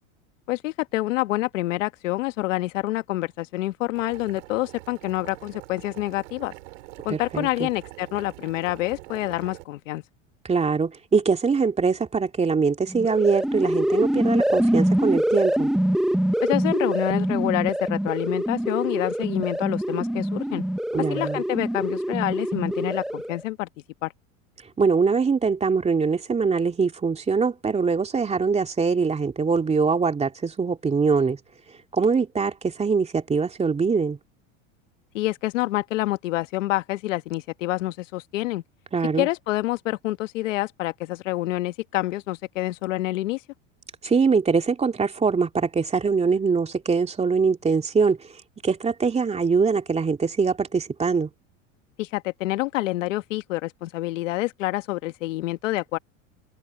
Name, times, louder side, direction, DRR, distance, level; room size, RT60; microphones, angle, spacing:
voice 1, 0.5-6.5 7.0-10.0 16.4-20.6 21.1-23.7 24.0-24.1 35.1-38.6 39.2-43.4 52.0-56.0, left 17 dB, 85° left, 1.4 m, -27 dB
Boiling, 3.9-9.6, right 21 dB, 75° right, 3.9 m, -44 dB
voice 2, 7.1-7.7 10.4-15.7 20.9-21.4 24.8-31.4 31.9-34.2 38.9-39.3 44.0-48.2 48.6-51.3, right 5 dB, 15° right, 2.6 m, -23 dB
sound 1, 12.9-23.4, right 1 dB, ahead, 0.9 m, -24 dB
open air
supercardioid pair, 120°, 37 cm